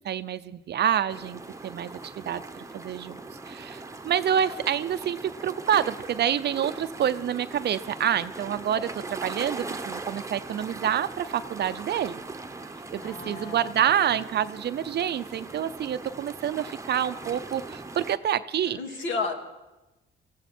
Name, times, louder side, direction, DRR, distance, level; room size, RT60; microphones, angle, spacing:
voice 1, 0.0-3.2 3.5-12.2 12.9-18.8, right 9 dB, 55° right, 13 dB, 0.6 m, -27 dB
sound 1, 1.1-18.2, right 3 dB, 15° right, 1.0 m, -40 dB
voice 2, 13.0-13.6 18.7-19.3, left 4 dB, 75° left, 3 dB, 2.4 m, -32 dB
19.0 x 15.0 x 4.4 m, 1.0 s
cardioid pair, 90°, 20 cm